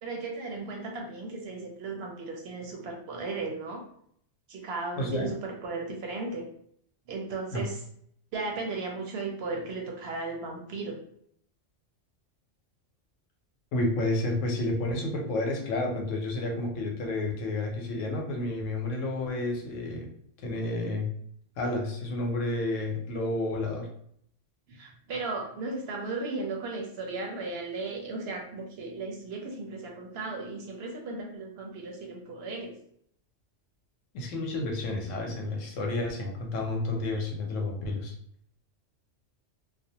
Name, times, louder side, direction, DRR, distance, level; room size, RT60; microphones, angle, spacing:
voice 1, 0.0-3.8 4.5-6.5 7.1-7.8 8.3-11.0 24.7-32.7, right 3 dB, 65° right, 0 dB, 0.7 m, -36 dB
voice 2, 5.0-5.3 7.5-7.6 13.7-20.1 20.4-21.1 21.6-23.9 34.1-38.2, left 2 dB, 90° left, 1 dB, 1.0 m, -30 dB
2.4 x 2.1 x 2.7 m, 0.66 s
omnidirectional pair, 1.3 m